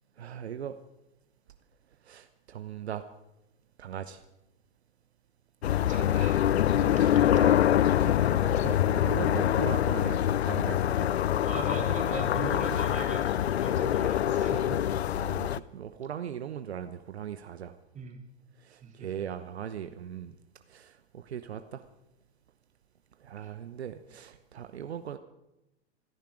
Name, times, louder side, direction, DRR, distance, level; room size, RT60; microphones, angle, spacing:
voice 1, 0.2-0.8 2.1-3.0 3.8-4.2 6.8-7.6 8.0-11.1 15.1-17.7 18.7-20.3 20.7-21.8 23.2-25.2, right 9 dB, 70° right, 9 dB, 1.0 m, -39 dB
sound 1, 5.6-15.6, left 11 dB, 70° left, 0.6 m, -25 dB
voice 2, 5.9-6.4 6.9-7.2 11.4-14.8 17.9-18.2 18.8-19.1 23.4-23.5, right 5 dB, 20° right, 2 dB, 3.2 m, -40 dB
27.5 x 10.5 x 4.9 m, 0.91 s
figure-of-eight pair, 100°, 34 cm